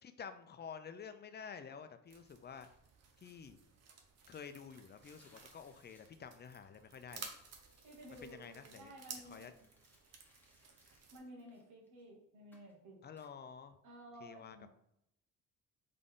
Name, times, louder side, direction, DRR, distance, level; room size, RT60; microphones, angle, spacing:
voice 1, 0.0-2.7 3.2-3.6 4.3-7.3 8.2-8.9 9.2-9.5 13.0-13.8 14.2-14.7, left 6 dB, 35° left, 10 dB, 0.5 m, -50 dB
sound 1, 2.1-11.2, right 5 dB, 60° right, 0.9 m, -55 dB
sound 2, 4.9-6.1 7.0-8.2 9.4-12.1 12.5-12.7 13.2-13.3, left 1 dB, 5° left, 1.1 m, -70 dB
voice 2, 7.8-9.5 11.1-13.0 13.8-14.7, right 1 dB, 80° right, -1 dB, 1.6 m, -54 dB
3.9 x 3.7 x 3.7 m, 0.79 s
cardioid pair, 90°, 30 cm